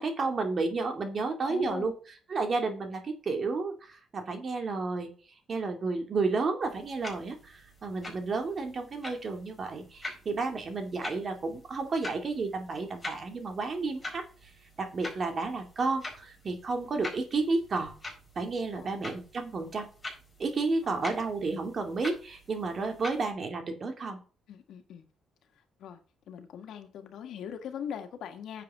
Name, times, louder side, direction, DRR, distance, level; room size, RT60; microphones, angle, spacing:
voice 1, 0.0-1.9 2.3-5.1 5.5-14.2 14.8-17.9 18.4-19.9 20.4-24.2, right 3 dB, 45° right, 2.4 m, -31 dB
voice 2, 1.4-1.9 18.7-18.9 20.8-21.0 24.5-25.0 25.6-26.0 26.3-28.6, left 8 dB, 75° left, 1.7 m, -41 dB
sound 1, 6.6-23.3, left 2 dB, 15° left, 4.8 m, -45 dB
9.5 x 7.5 x 3.7 m
cardioid pair, 90°, 0 cm